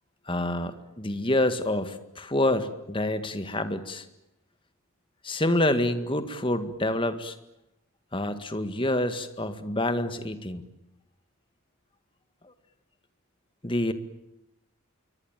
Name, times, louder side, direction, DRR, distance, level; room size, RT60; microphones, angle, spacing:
voice 1, 0.3-4.0 5.2-7.3 8.1-10.6 13.6-13.9, left 1 dB, 25° left, 10 dB, 1.9 m, -27 dB
27.5 x 23.5 x 9.2 m, 0.89 s
head